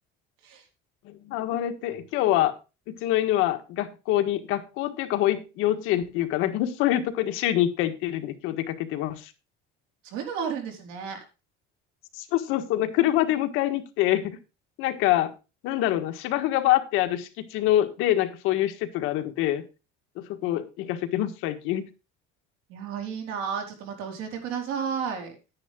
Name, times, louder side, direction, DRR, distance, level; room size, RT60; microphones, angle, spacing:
voice 1, 1.0-2.5 2.9-9.3 12.1-14.4 14.8-15.3 15.6-19.6 20.2-21.9, left 13 dB, 75° left, 1.5 m, -25 dB
voice 2, 10.0-11.2 22.7-25.4, right 7 dB, 85° right, 4.2 m, -32 dB
10.5 x 9.8 x 3.7 m
cardioid pair, 180°, 21 cm